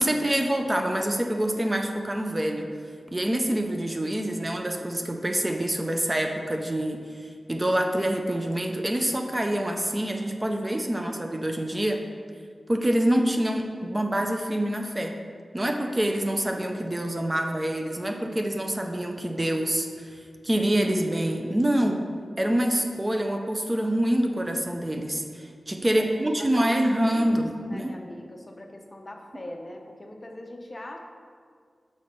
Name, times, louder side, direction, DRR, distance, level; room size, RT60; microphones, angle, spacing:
voice 1, 0.0-2.7 3.1-12.0 12.7-15.2 15.5-22.0 22.4-28.0, right 1 dB, 25° right, 3 dB, 0.5 m, -26 dB
voice 2, 25.9-31.0, left 1 dB, 30° left, 2 dB, 0.7 m, -42 dB
6.0 x 4.2 x 5.1 m, 2.1 s
wide cardioid pair, 85°, 0 cm